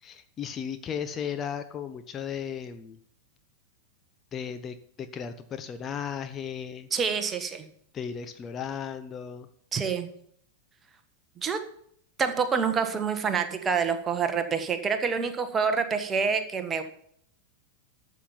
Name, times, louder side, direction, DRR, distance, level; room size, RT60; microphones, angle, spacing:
voice 1, 0.0-3.0 4.3-6.9 7.9-9.5, left 7 dB, 25° left, 9 dB, 0.9 m, -35 dB
voice 2, 6.9-7.7 9.7-10.1 11.4-11.6 12.2-16.8, right 6 dB, 20° right, 8 dB, 1.5 m, -27 dB
13.0 x 7.3 x 5.7 m, 0.65 s
figure-of-eight pair, 90°, 0 cm